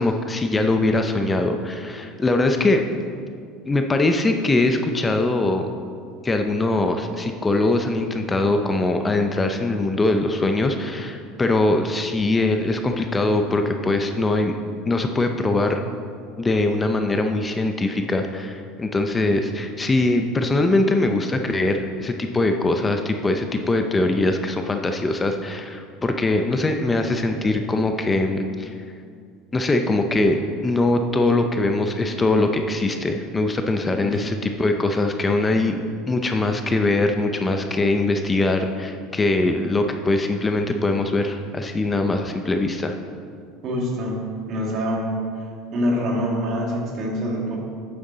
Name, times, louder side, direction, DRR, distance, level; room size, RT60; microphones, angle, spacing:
voice 1, 0.0-2.8 3.7-5.7 6.2-14.6 14.9-15.8 16.4-28.7 29.5-43.0, left 2 dB, 20° left, 5 dB, 0.6 m, -22 dB
voice 2, 34.0-34.4 43.6-45.2 45.7-47.6, equal, 50° right, 0 dB, 1.9 m, -25 dB
9.0 x 7.0 x 3.9 m, 2.2 s
supercardioid pair, 105°, 0 cm